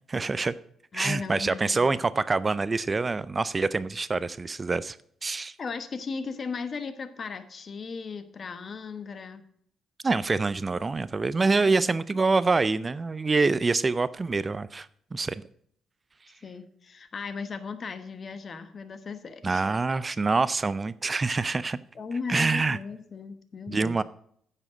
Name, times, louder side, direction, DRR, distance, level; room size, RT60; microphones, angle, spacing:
voice 1, 0.1-0.5 0.9-5.0 5.2-5.5 10.0-15.4 19.4-21.8 22.3-22.8 23.7-24.0, right 3 dB, 30° right, 17 dB, 0.4 m, -26 dB
voice 2, 0.9-2.0 5.6-9.4 11.6-12.2 16.4-19.7 21.9-24.0, left 5 dB, 45° left, 11 dB, 1.1 m, -37 dB
9.7 x 7.2 x 5.0 m, 0.66 s
cardioid pair, 90°, 0 cm